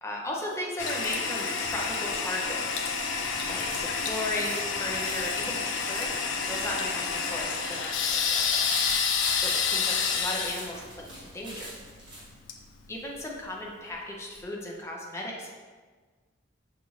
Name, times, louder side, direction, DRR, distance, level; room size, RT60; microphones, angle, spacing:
voice 1, 0.0-2.9 3.5-8.7 9.4-11.7 12.9-15.5, left 1 dB, 15° left, -2 dB, 0.5 m, -36 dB
Toilet flush, 0.8-13.4, left 5 dB, 75° left, 0.4 m, -29 dB
sound 1, 2.8-12.3, right 1 dB, 25° right, 0.9 m, -43 dB
5.3 x 2.5 x 3.1 m, 1.4 s
head